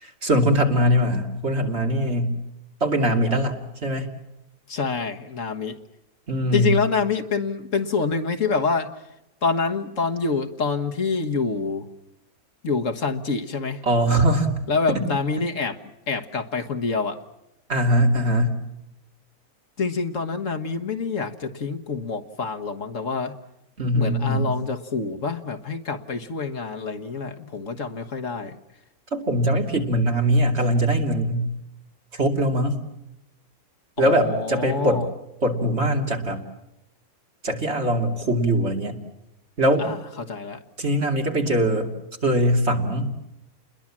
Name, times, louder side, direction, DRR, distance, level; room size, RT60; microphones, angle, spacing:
voice 1, 0.0-2.4 2.8-4.1 6.3-6.7 13.8-14.6 14.9-15.0 17.7-18.5 23.8-24.5 29.1-31.5 32.1-32.8 34.0-35.0 35.4-36.4 37.4-39.0 39.6-39.9 40.8-41.9 42.2-43.1, right 1 dB, 45° right, 3 dB, 3.1 m, -21 dB
voice 2, 4.7-5.8 6.5-8.9 9.4-11.9 12.6-13.8 14.7-15.8 16.1-17.2 19.8-23.4 23.9-28.6 34.0-35.1 39.8-40.6, left 4 dB, 60° left, 5 dB, 1.7 m, -26 dB
29.5 x 21.5 x 7.4 m, 0.90 s
omnidirectional pair, 1.5 m